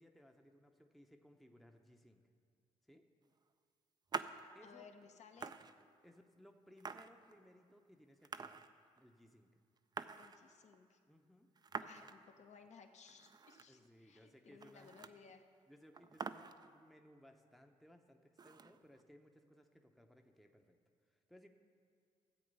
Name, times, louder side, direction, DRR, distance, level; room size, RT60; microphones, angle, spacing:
voice 1, 0.0-2.2 2.9-3.1 4.5-4.9 6.0-8.6 9.0-9.5 11.1-11.5 12.0-12.1 13.7-15.0 15.7-20.8 21.1-21.5, equal, ahead, 4 dB, 0.8 m, -63 dB
sound 1, 4.1-4.4 5.0-5.1 5.3-6.2 6.8-7.7 8.2-9.0 9.3-9.4 9.6-10.8 11.6-12.3 12.7-12.8 13.1-13.9 14.1-14.2 14.5-15.3 15.6-15.7 15.9-16.9 18.4-19.0, right 5 dB, 30° right, 0.5 m, -47 dB
voice 2, 4.6-5.5 10.2-11.0 11.8-15.5, left 6 dB, 60° left, 5 dB, 1.1 m, -60 dB
12.5 x 7.8 x 5.5 m, 2.2 s
supercardioid pair, 60°, 14 cm